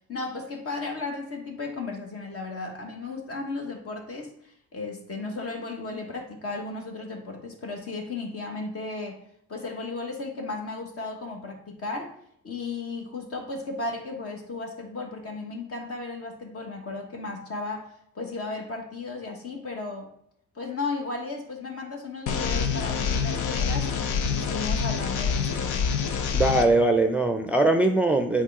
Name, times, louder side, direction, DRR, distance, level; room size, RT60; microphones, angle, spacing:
voice 1, 0.1-9.2 9.5-12.2 12.4-20.1 20.5-25.8, left 3 dB, 50° left, 2 dB, 1.7 m, -35 dB
sound 1, 22.3-26.6, left 6 dB, 85° left, 0.8 m, -26 dB
voice 2, 26.3-28.4, right 2 dB, 5° right, 5 dB, 0.5 m, -21 dB
7.2 x 4.6 x 3.6 m, 0.71 s
cardioid pair, 90°, 30 cm